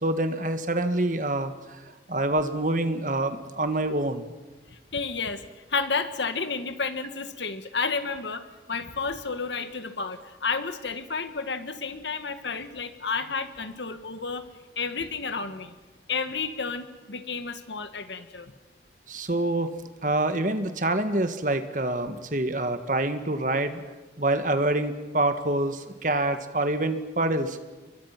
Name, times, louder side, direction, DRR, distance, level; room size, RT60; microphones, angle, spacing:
voice 1, 0.0-1.8 2.1-4.3 19.1-19.7 20.0-23.8 24.2-27.6, right 1 dB, 45° right, 8 dB, 1.6 m, -26 dB
voice 2, 4.9-5.4 5.7-14.5 14.8-15.7 16.1-18.5, left 4 dB, 85° left, 9 dB, 1.8 m, -31 dB
29.5 x 23.0 x 5.9 m, 1.2 s
head